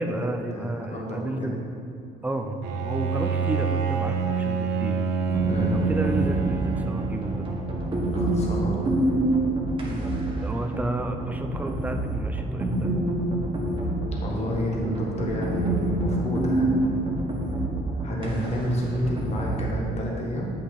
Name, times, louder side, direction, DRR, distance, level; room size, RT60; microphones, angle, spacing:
voice 1, 0.0-1.6 2.2-5.0 5.7-7.5 9.8-10.1 10.4-12.9, right 1 dB, 10° right, 5 dB, 0.6 m, -31 dB
voice 2, 0.5-1.5 5.5-5.8 8.1-9.0 14.2-17.0 18.0-20.5, equal, 40° left, -2 dB, 1.5 m, -30 dB
Bowed string instrument, 2.6-8.0, right 5 dB, 80° right, 0.8 m, -27 dB
sound 1, 5.3-19.8, right 1 dB, 30° right, 1.6 m, -27 dB
8.2 x 5.6 x 4.3 m, 2.7 s
cardioid pair, 110°, 17 cm